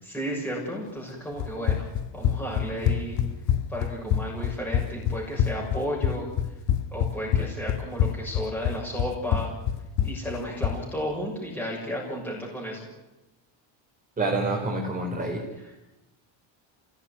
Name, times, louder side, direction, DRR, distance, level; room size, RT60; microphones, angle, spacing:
voice 1, 0.0-3.2 3.7-6.3 6.9-9.5 10.0-12.9, equal, 5° left, -4 dB, 6.6 m, -33 dB
Run, 1.4-10.8, left 9 dB, 60° left, 2.0 m, -26 dB
voice 2, 14.2-15.4, right 2 dB, 15° right, -2 dB, 4.6 m, -27 dB
28.0 x 17.5 x 9.6 m, 0.98 s
cardioid pair, 160°, 49 cm